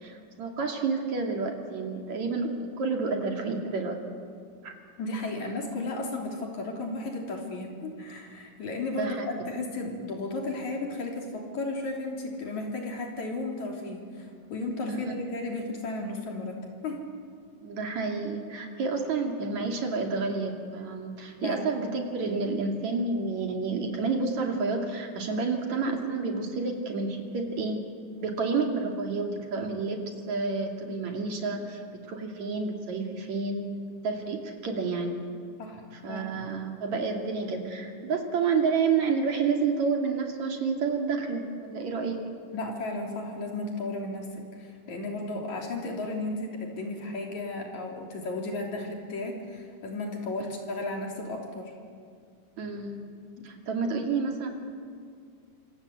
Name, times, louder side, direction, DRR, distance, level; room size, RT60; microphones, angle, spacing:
voice 1, 0.0-4.0 4.6-4.7 9.0-9.3 14.9-15.1 17.6-27.9 28.2-33.7 34.0-35.2 35.9-42.2 52.6-53.0 53.4-54.5, right 4 dB, 60° right, 2 dB, 3.7 m, -30 dB
voice 2, 5.0-17.0 21.4-21.7 35.6-36.2 42.5-51.7 53.4-53.5, left 2 dB, 65° left, 1 dB, 4.6 m, -34 dB
27.0 x 26.0 x 8.3 m, 2.2 s
omnidirectional pair, 3.7 m